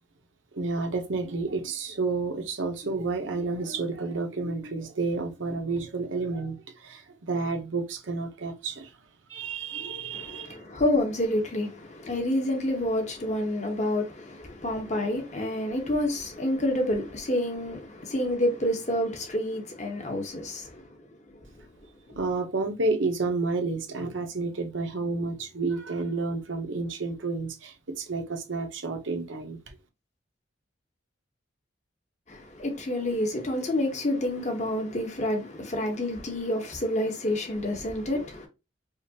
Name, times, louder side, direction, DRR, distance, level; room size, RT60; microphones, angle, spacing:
voice 1, 0.5-8.9 9.3-10.6 22.2-29.7, right 3 dB, 75° right, 0.9 m, -30 dB
voice 2, 10.1-21.0 22.1-22.2 32.3-38.5, left 1 dB, 35° left, 1.0 m, -28 dB
4.9 x 2.5 x 2.8 m
head